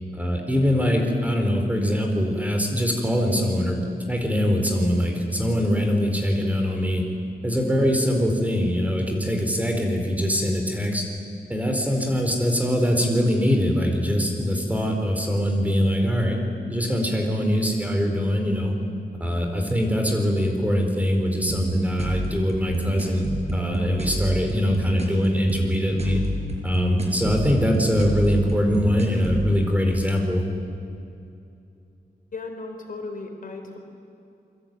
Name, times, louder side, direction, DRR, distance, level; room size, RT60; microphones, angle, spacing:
voice 1, 0.1-3.8 4.1-7.0 7.4-11.1 11.5-16.4 16.7-18.7 19.2-23.2 23.5-26.2 26.6-30.4, equal, 10° right, 3 dB, 4.2 m, -23 dB
sound 1, 21.5-29.5, right 1 dB, 45° right, 5.0 m, -28 dB
voice 2, 32.3-33.8, left 3 dB, 60° left, 4 dB, 3.9 m, -35 dB
28.0 x 23.0 x 9.2 m, 2.6 s
wide cardioid pair, 135°, 16 cm